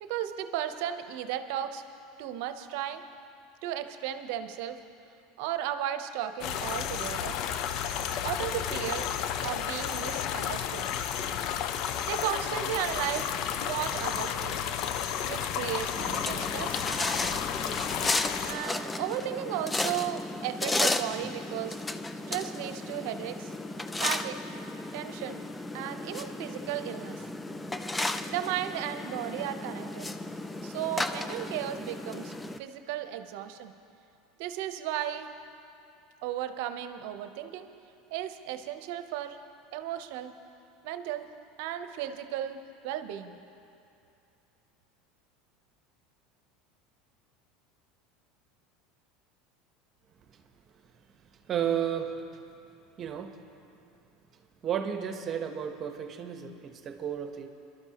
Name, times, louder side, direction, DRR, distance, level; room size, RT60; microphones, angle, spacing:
voice 1, 0.0-1.8 2.2-3.0 3.6-4.8 5.4-7.4 8.2-9.1 9.4-10.9 12.0-14.6 15.3-16.8 18.5-21.8 22.3-23.5 24.0-24.4 24.9-25.4 25.7-27.2 28.3-30.1 30.6-32.3 32.6-33.7 34.4-35.3 36.2-37.7 38.1-39.4 39.7-40.3 40.8-41.3 41.6-42.6 42.8-43.4, right 11 dB, 70° right, 9 dB, 0.8 m, -35 dB
sound 1, 6.4-18.5, left 9 dB, 55° left, 0.6 m, -32 dB
sound 2, 16.0-32.6, left 2 dB, 15° left, 0.5 m, -34 dB
voice 2, 51.4-52.4 53.0-53.4 54.3-57.5, right 8 dB, 40° right, 6 dB, 1.1 m, -33 dB
23.5 x 12.0 x 3.0 m, 2.6 s
hypercardioid pair, 95°, 0 cm